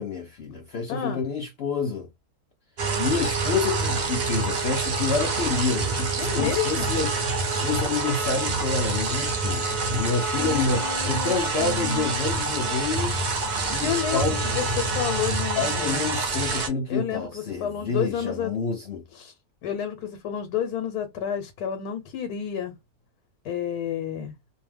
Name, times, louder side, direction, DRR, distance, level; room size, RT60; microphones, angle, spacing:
voice 1, 0.0-2.1 3.0-13.2 13.7-14.4 15.2-15.3 15.6-19.0, left 4 dB, 70° left, 0.6 m, -28 dB
voice 2, 0.9-1.2 6.2-6.9 10.3-11.3 11.6-12.1 13.8-16.0 16.9-18.5 19.1-19.3 19.6-22.7 23.4-24.3, left 9 dB, 85° left, 1.2 m, -30 dB
sound 1, 2.8-16.7, right 3 dB, 80° right, 0.4 m, -26 dB
2.6 x 2.1 x 3.2 m
omnidirectional pair, 1.6 m